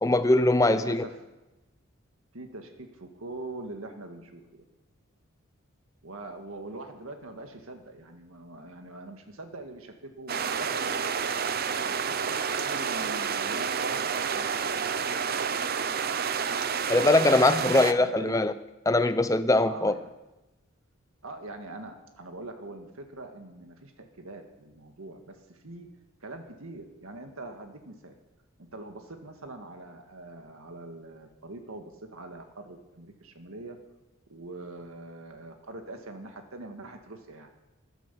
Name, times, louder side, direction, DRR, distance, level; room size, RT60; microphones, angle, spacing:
voice 1, 0.0-1.0 16.9-18.5 18.9-19.9, left 2 dB, 15° left, 0.5 m, -22 dB
voice 2, 0.6-1.2 2.3-4.7 6.0-11.3 11.8-15.6 17.5-18.4 19.7-20.1 21.2-25.9 26.2-28.2 28.7-33.8 34.3-37.5, right 2 dB, 80° right, 1.8 m, -43 dB
sound 1, 10.3-17.9, right 6 dB, 45° right, 0.6 m, -29 dB
14.0 x 11.0 x 6.9 m
head